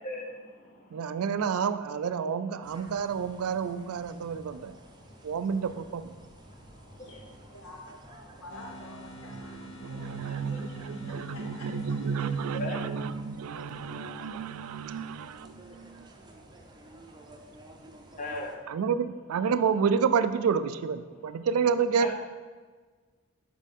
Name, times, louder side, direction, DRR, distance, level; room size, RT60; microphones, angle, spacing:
voice 1, 0.9-4.7 5.2-6.1 9.3-9.5 9.8-16.0 18.7-22.1, right 6 dB, 80° right, 13 dB, 0.4 m, -30 dB
sound 1, 2.6-18.6, right 1 dB, 20° right, 0.6 m, -52 dB
voice 2, 7.5-12.3, left 1 dB, 80° left, -1 dB, 1.5 m, -49 dB
sound 2, 8.5-13.2, equal, 60° left, 1.0 m, -47 dB
voice 3, 18.2-18.5 22.0-22.1, left 2 dB, 35° left, 2 dB, 0.9 m, -34 dB
7.2 x 4.5 x 4.1 m, 1.4 s
head